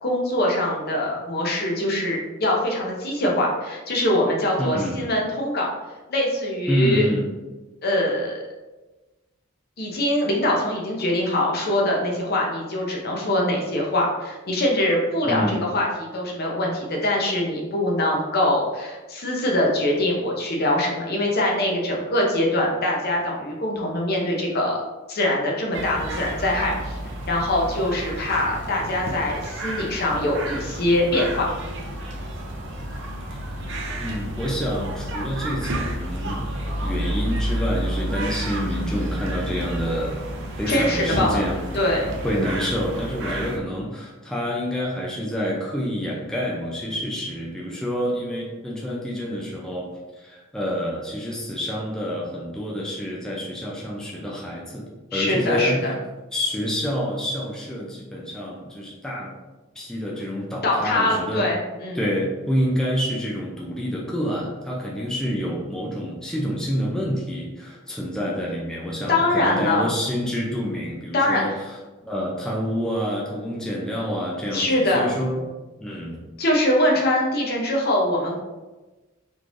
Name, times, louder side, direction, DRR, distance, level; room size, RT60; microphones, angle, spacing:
voice 1, 0.0-5.7 6.1-7.1 7.8-8.4 9.8-24.8 25.1-27.0 27.3-31.5 40.7-41.4 41.7-42.1 43.2-43.4 55.1-56.0 60.6-62.0 69.1-69.9 71.1-71.4 74.5-75.2 76.4-78.4, left 1 dB, 50° left, -1 dB, 0.7 m, -23 dB
voice 2, 4.6-5.0 6.7-7.2 15.3-15.7 34.0-36.5 36.8-41.8 42.2-49.9 50.2-54.9 55.1-55.9 56.3-59.3 59.8-61.5 61.9-71.8 72.0-75.4 75.8-76.2, equal, 5° left, -4 dB, 0.4 m, -28 dB
sound 1, 25.7-43.6, right 1 dB, 65° right, 0.6 m, -30 dB
3.6 x 3.0 x 2.5 m, 1.2 s
head